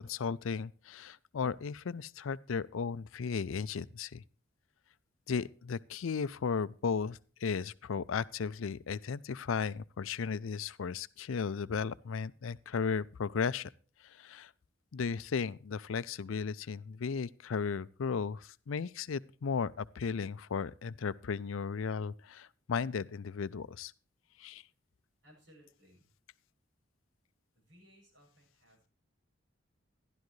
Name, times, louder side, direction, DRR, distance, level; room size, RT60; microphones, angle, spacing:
voice 1, 0.0-4.2 5.3-13.7 14.0-14.5 14.9-23.9 24.4-24.6, left 5 dB, 80° left, 0.5 m, -35 dB
voice 2, 25.2-26.1 27.5-28.9, equal, 60° right, 7.4 m, -62 dB
13.0 x 11.5 x 3.1 m
head